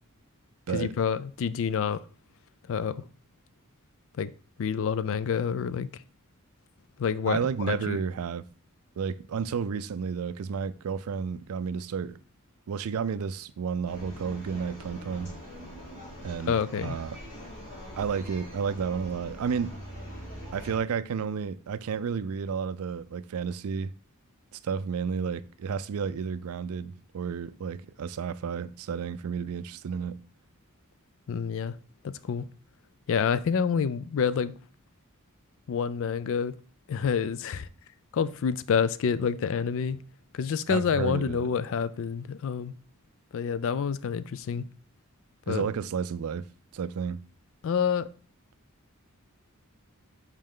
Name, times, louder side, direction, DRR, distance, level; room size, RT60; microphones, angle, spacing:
voice 1, 0.7-2.0 2.7-3.0 4.2-4.3 4.6-5.9 7.0-7.4 7.7-8.0 16.4-17.0 31.3-31.8 32.0-32.5 33.1-34.5 35.7-36.5 36.9-37.7 38.1-40.0 40.3-42.7 43.3-44.7 45.5-45.7 47.6-48.1, left 6 dB, 65° left, 0.4 m, -28 dB
voice 2, 7.3-8.5 9.0-12.2 12.7-15.3 16.2-17.2 18.0-19.8 20.5-23.9 24.5-30.2 40.7-41.5 45.5-46.5 46.7-47.2, right 6 dB, 75° right, 0.4 m, -31 dB
sound 1, 13.8-20.8, equal, 35° left, 3.3 m, -43 dB
5.4 x 4.9 x 3.7 m
head